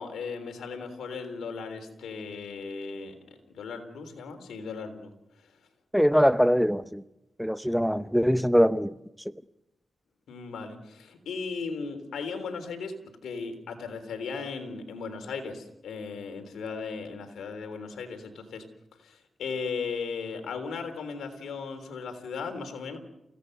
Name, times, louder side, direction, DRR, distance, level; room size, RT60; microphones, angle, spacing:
voice 1, 0.0-3.1 3.5-5.1 10.3-18.6 19.0-23.0, left 5 dB, 85° left, 3.6 m, -37 dB
voice 2, 5.9-7.0 7.4-8.9, equal, ahead, 0.7 m, -22 dB
28.5 x 17.0 x 6.7 m
cardioid pair, 60°, 0 cm